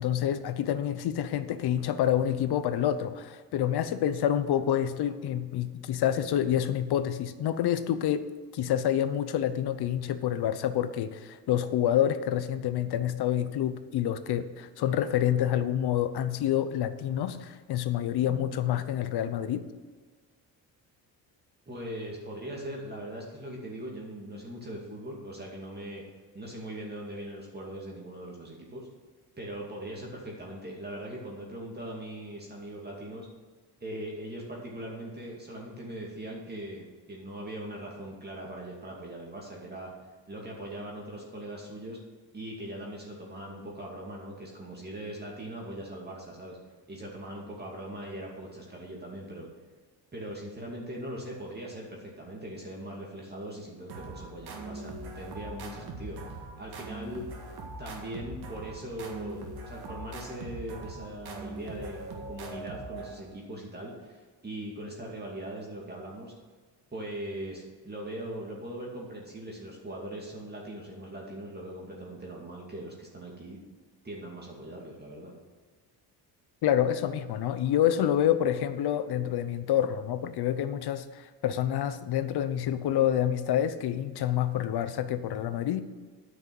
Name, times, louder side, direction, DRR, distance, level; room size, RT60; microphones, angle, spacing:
voice 1, 0.0-8.3 8.5-19.6 76.6-85.8, left 10 dB, 60° left, 12 dB, 0.8 m, -28 dB
voice 2, 21.7-26.0 26.3-28.9 29.4-33.3 33.8-39.9 40.3-42.0 42.3-46.6 46.9-49.5 50.1-57.2 57.8-66.3 66.9-73.6 74.0-75.3, right 1 dB, 20° right, -3 dB, 2.4 m, -40 dB
sound 1, 53.9-63.4, right 2 dB, 60° right, 2.0 m, -41 dB
9.2 x 6.3 x 7.6 m, 1.5 s
cardioid pair, 100°, 43 cm